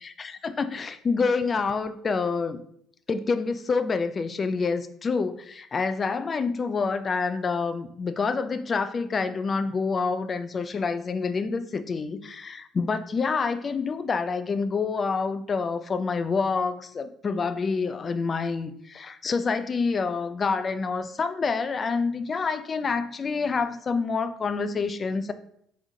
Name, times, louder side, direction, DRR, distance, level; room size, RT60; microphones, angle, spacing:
voice 1, 0.2-2.6 3.1-25.3, left 4 dB, 35° left, 11 dB, 0.4 m, -27 dB
5.1 x 3.4 x 2.7 m, 0.69 s
hypercardioid pair, 55°, 0 cm